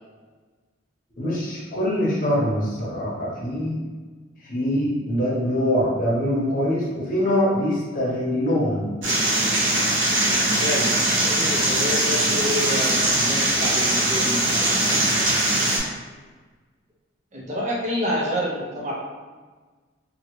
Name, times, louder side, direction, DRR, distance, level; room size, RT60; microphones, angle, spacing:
voice 1, 1.2-3.8 4.4-8.8, equal, 45° left, -5 dB, 0.8 m, -23 dB
sound 1, 9.0-15.8, right 1 dB, 70° right, 0.9 m, -21 dB
voice 2, 10.6-14.8 17.3-18.9, equal, 35° right, -4 dB, 0.6 m, -28 dB
2.8 x 2.6 x 3.0 m, 1.4 s
head